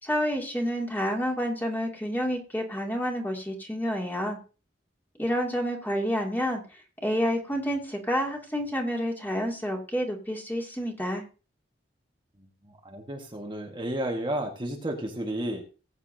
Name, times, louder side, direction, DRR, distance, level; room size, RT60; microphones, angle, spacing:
voice 1, 0.0-4.4 5.2-6.6 7.0-11.2, equal, 10° left, 0 dB, 2.5 m, -29 dB
voice 2, 12.6-15.6, right 1 dB, 25° right, 0 dB, 1.6 m, -32 dB
19.5 x 8.4 x 2.8 m, 0.35 s
head